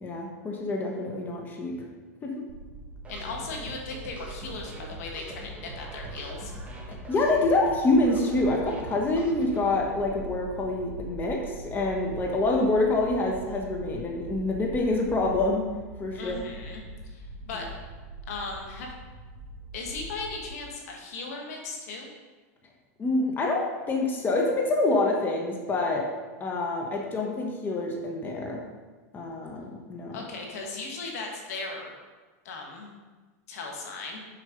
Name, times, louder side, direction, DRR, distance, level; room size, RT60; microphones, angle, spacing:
voice 1, 0.0-1.7 2.2-2.4 7.1-15.7 16.0-16.4 23.0-26.0 26.4-28.6 29.1-30.2, left 2 dB, 20° left, 0 dB, 1.2 m, -26 dB
sound 1, 2.5-20.5, right 1 dB, 60° right, 1.3 m, -43 dB
sound 2, 3.0-9.7, right 2 dB, 15° right, 1.3 m, -44 dB
voice 2, 3.1-6.5 16.1-17.7 18.3-18.9 19.7-22.1 30.1-31.9 32.5-32.9 33.5-34.2, left 3 dB, 75° left, 0 dB, 1.7 m, -37 dB
6.7 x 5.2 x 5.2 m, 1.3 s
supercardioid pair, 125°, 8 cm